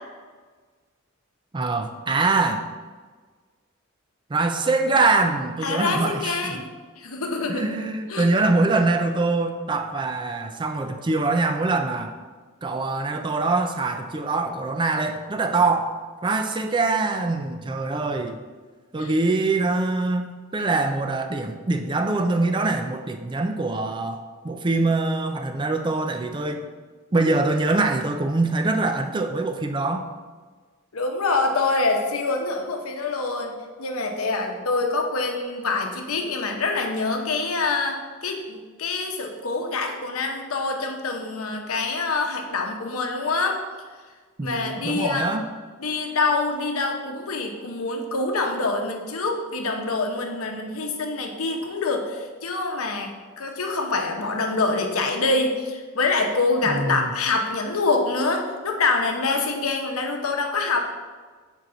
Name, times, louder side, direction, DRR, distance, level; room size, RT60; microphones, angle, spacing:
voice 1, 1.5-2.7 4.3-6.6 7.5-12.1 12.6-18.4 18.9-20.2 20.5-26.7 27.1-30.1 44.4-45.4 56.6-57.1, right 3 dB, 20° right, 7 dB, 0.4 m, -24 dB
voice 2, 5.6-6.7 7.0-7.6 8.1-8.3 19.0-19.1 30.9-43.6 44.4-45.3 45.8-53.1 53.4-60.8, left 3 dB, 85° left, 3 dB, 0.9 m, -25 dB
6.9 x 4.6 x 3.8 m, 1.5 s
head